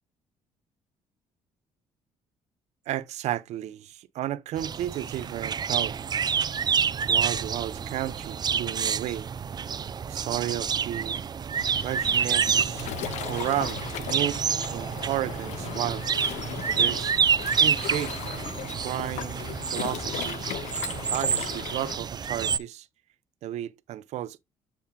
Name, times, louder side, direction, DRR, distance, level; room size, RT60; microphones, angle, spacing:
voice 1, 2.9-6.0 7.0-9.3 10.1-11.2 11.8-12.9 13.3-16.0 16.7-17.1 17.6-18.2 18.8-20.4 21.1-22.9 23.4-24.4, right 13 dB, 70° right, 0.7 m, -33 dB
sound 1, 4.6-22.6, right 7 dB, 35° right, 0.4 m, -28 dB
Waves surf, 11.6-22.0, left 12 dB, 75° left, 0.7 m, -37 dB
8.2 x 7.1 x 2.3 m
supercardioid pair, 80°, 12 cm